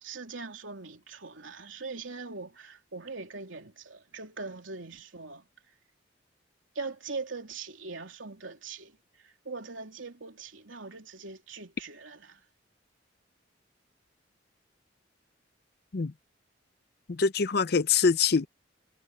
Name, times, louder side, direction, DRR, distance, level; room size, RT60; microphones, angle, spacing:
voice 1, 0.0-5.5 6.7-12.4, right 4 dB, 85° right, 3.3 m, -41 dB
voice 2, 17.1-18.5, left 5 dB, 55° left, 0.6 m, -24 dB
head